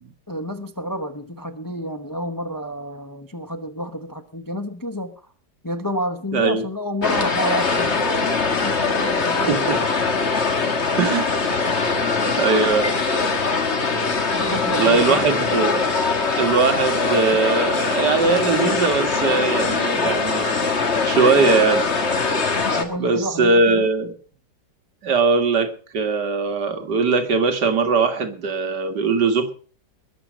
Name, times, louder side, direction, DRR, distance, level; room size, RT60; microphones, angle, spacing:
voice 1, 0.3-5.1 5.6-8.0 8.6-9.8 14.3-15.3 22.8-23.9, equal, 20° left, 8 dB, 0.6 m, -29 dB
voice 2, 6.3-6.6 9.5-9.8 11.0-12.1 12.4-12.9 13.5-13.7 14.7-15.9 16.4-20.7 21.0-21.9 23.0-24.2 25.0-29.6, right 4 dB, 70° right, 7 dB, 2.3 m, -20 dB
sound 1, 7.0-22.8, left 4 dB, 40° left, 1.8 m, -22 dB
21.0 x 7.4 x 6.2 m, 0.42 s
omnidirectional pair, 1.9 m